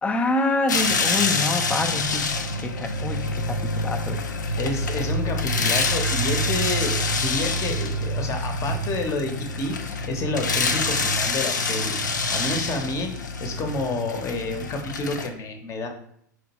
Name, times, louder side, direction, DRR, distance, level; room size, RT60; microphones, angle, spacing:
voice 1, 0.0-4.2, left 2 dB, 15° left, 6 dB, 0.5 m, -26 dB
sound 1, 0.7-15.3, left 2 dB, 80° left, 0.5 m, -26 dB
voice 2, 4.6-12.0 12.3-15.9, left 2 dB, 30° left, 4 dB, 0.8 m, -29 dB
4.8 x 2.9 x 2.9 m, 0.69 s
hypercardioid pair, 95°, 10 cm